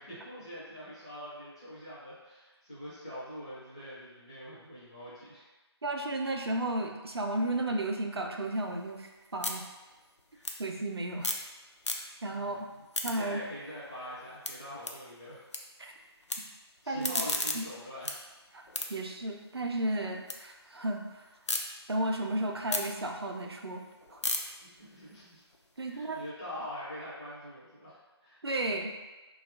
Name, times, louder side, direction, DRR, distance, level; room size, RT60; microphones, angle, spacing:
voice 1, 0.0-5.4 10.3-10.6 12.3-15.4 16.8-18.2 19.0-19.1 24.6-25.4 25.9-28.4, equal, 10° left, -11 dB, 0.4 m, -44 dB
voice 2, 5.8-9.6 10.6-11.3 12.2-12.7 13.0-13.4 15.8-15.9 16.9-17.2 17.5-17.6 18.5-18.6 18.9-21.2 21.9-23.8 24.1-24.2 25.8-26.2 28.4-28.9, right 1 dB, 65° right, 2 dB, 0.5 m, -33 dB
sound 1, 8.5-11.5 11.8-12.4 12.7-15.6 15.9-16.4 16.8-20.4 20.8-21.6 22.1-26.2, left 2 dB, 85° left, 0.4 m, -37 dB
2.7 x 2.3 x 3.3 m, 1.2 s
figure-of-eight pair, 155°, 14 cm